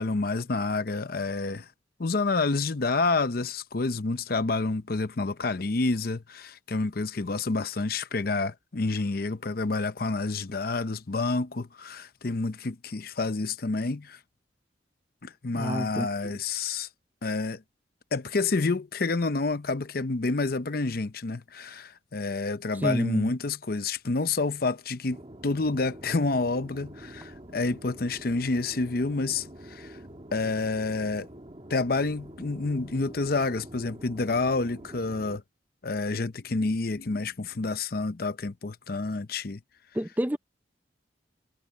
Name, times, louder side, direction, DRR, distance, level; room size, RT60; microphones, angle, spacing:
voice 1, 0.0-1.7 2.0-14.2 15.2-16.9 17.2-17.6 18.1-30.0 30.3-31.3 31.7-35.4 35.8-39.6, left 3 dB, 50° left, 0.7 m, -29 dB
voice 2, 15.5-16.1 22.8-23.3 39.9-40.4, equal, 10° right, 0.6 m, -28 dB
sound 1, 25.1-35.4, right 1 dB, 30° right, 1.9 m, -46 dB
head